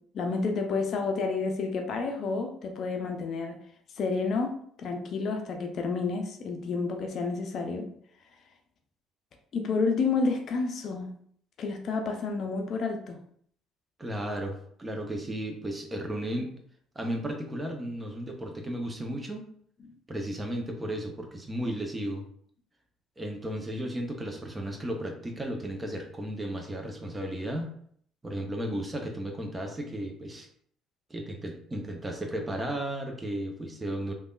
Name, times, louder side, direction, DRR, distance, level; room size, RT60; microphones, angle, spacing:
voice 1, 0.1-3.6 4.0-7.9 9.5-11.1 11.6-13.2, left 4 dB, 50° left, 3 dB, 0.5 m, -30 dB
voice 2, 14.0-16.5 17.0-19.5 20.1-22.2 23.2-27.7 28.2-30.5 31.1-34.1, right 1 dB, 20° right, 3 dB, 0.7 m, -34 dB
3.4 x 2.2 x 2.4 m, 0.62 s
hypercardioid pair, 55°, 0 cm